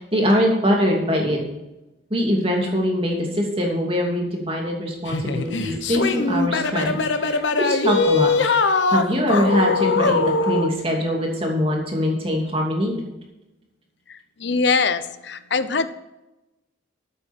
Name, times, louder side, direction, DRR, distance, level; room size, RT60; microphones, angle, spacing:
voice 1, 0.0-1.4 2.1-8.3 8.6-12.9, equal, 30° right, 0 dB, 2.6 m, -23 dB
sound 1, 5.1-10.7, left 3 dB, 80° left, 1.1 m, -21 dB
voice 2, 14.4-15.9, left 4 dB, 65° left, 12 dB, 0.7 m, -22 dB
13.0 x 9.1 x 4.4 m, 0.99 s
head